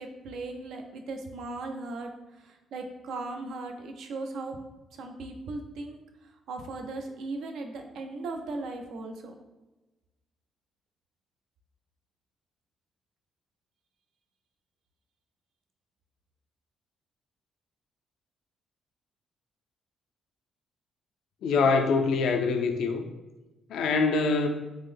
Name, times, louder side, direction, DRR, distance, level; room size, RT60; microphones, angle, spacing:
voice 1, 0.0-2.1 2.4-4.6 4.9-6.0 6.5-9.3, right 2 dB, 75° right, 4 dB, 0.4 m, -37 dB
voice 2, 21.4-23.0 23.7-24.5, left 4 dB, 75° left, 6 dB, 0.3 m, -24 dB
3.5 x 2.0 x 3.3 m, 1.1 s
cardioid pair, 90°, 0 cm